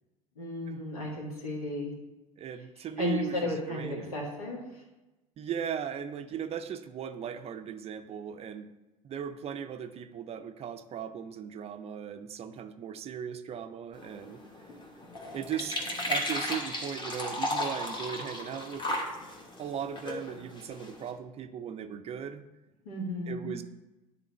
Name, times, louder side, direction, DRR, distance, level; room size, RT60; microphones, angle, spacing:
voice 1, 0.4-1.9 3.0-4.8 22.9-23.5, left 2 dB, 80° left, -3 dB, 1.8 m, -34 dB
voice 2, 2.4-4.3 5.4-8.7 9.0-14.4 15.3-19.0 19.6-22.4 23.3-23.6, right 8 dB, 35° right, 9 dB, 0.5 m, -38 dB
sound 1, 13.9-21.1, left 1 dB, 25° left, 1.4 m, -35 dB
9.8 x 3.8 x 3.1 m, 1.1 s
hypercardioid pair, 75°, 19 cm